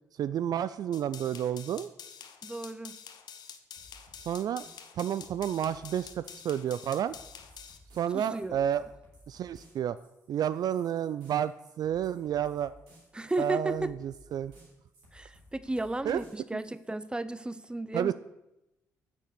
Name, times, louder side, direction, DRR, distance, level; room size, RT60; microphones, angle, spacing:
voice 1, 0.1-1.9 4.2-4.6 4.9-7.1 7.9-8.9 9.3-10.0 10.3-12.7 13.4-14.5 16.1-16.2 16.5-16.6 17.9-18.1, right 10 dB, 50° right, 14 dB, 0.3 m, -30 dB
sound 1, 0.9-7.8, left 7 dB, 55° left, 1.1 m, -47 dB
voice 2, 2.4-3.0 8.1-8.6 13.1-13.9 15.1-18.1, right 2 dB, 10° right, 15 dB, 0.7 m, -34 dB
sound 2, 3.8-16.9, equal, 70° right, 3.6 m, -58 dB
9.2 x 6.4 x 6.8 m, 0.92 s
figure-of-eight pair, 45°, 9 cm